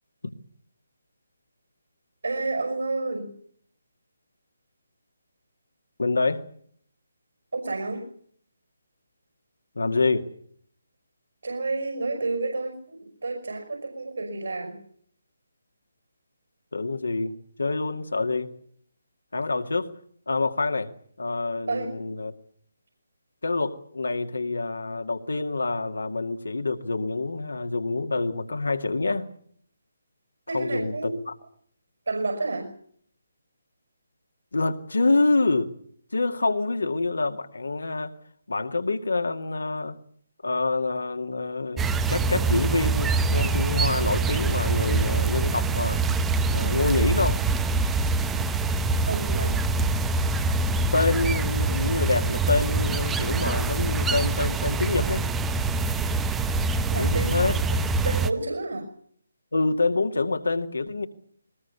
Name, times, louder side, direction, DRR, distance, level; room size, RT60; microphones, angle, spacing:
voice 1, 2.2-3.3 7.5-8.1 11.4-14.8 21.7-21.9 30.5-31.2 32.1-32.7 49.1-49.6 56.9-57.4 57.7-58.9, right 3 dB, 65° right, 4 dB, 5.7 m, -30 dB
voice 2, 6.0-6.4 9.8-10.3 16.7-17.3 17.6-18.5 19.3-19.9 20.3-20.9 21.2-22.3 23.4-29.3 30.5-31.3 34.5-35.7 36.1-38.1 38.5-40.0 40.4-46.0 46.5-47.4 50.7-55.3 57.0-57.6 59.5-61.0, left 3 dB, 65° left, 6 dB, 2.2 m, -26 dB
sound 1, 41.8-58.3, right 3 dB, 10° right, 0.9 m, -25 dB
21.5 x 20.0 x 8.2 m, 0.63 s
figure-of-eight pair, 145°, 0 cm